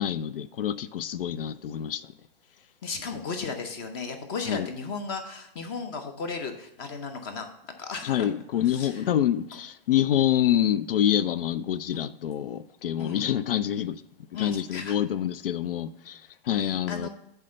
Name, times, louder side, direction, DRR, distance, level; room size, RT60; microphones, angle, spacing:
voice 1, 0.0-2.1 4.5-4.7 8.0-14.0 14.3-17.1, left 11 dB, 70° left, 0.5 m, -27 dB
voice 2, 2.8-7.5 7.8-9.0 11.9-12.1 13.0-13.3 14.3-15.0 16.6-17.1, left 4 dB, 25° left, 0.6 m, -35 dB
8.2 x 3.4 x 6.4 m
hypercardioid pair, 150°, 29 cm